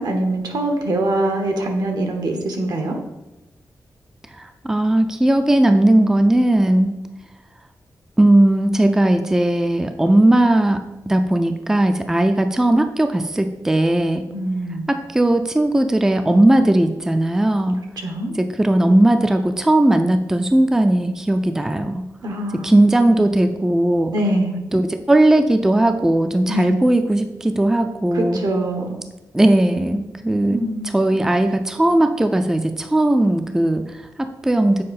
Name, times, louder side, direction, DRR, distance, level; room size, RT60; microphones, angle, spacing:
voice 1, 0.0-3.0 14.3-14.9 18.0-18.3 22.2-22.8 24.1-24.6 26.5-26.7 28.1-28.9 30.5-30.9, right 1 dB, 75° right, 4 dB, 1.2 m, -23 dB
voice 2, 4.3-7.0 8.2-14.2 14.9-17.8 18.4-22.0 22.5-24.1 24.7-28.4 29.3-30.6 30.9-34.8, right 1 dB, 5° right, 7 dB, 0.3 m, -17 dB
7.5 x 4.6 x 4.2 m, 0.97 s
wide cardioid pair, 155°, 7 cm